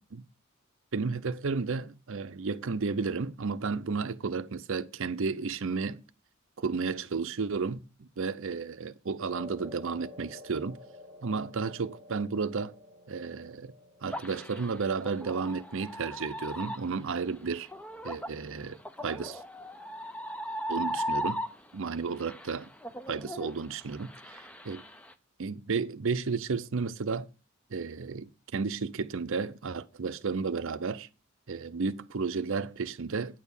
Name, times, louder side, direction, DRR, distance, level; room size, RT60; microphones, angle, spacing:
voice 1, 0.9-6.0 6.6-10.8 11.2-12.8 13.1-13.7 14.0-17.7 18.0-18.8 19.0-19.4 20.7-21.4 21.7-22.7 23.1-24.8 25.4-27.3 27.7-31.1 31.5-33.4, right 4 dB, 60° right, 0.6 m, -33 dB
sound 1, 9.3-17.8, left 2 dB, 15° right, 1.3 m, -52 dB
sound 2, 14.1-21.9 22.2-25.1, equal, 5° left, 0.4 m, -37 dB
9.1 x 4.2 x 7.1 m
head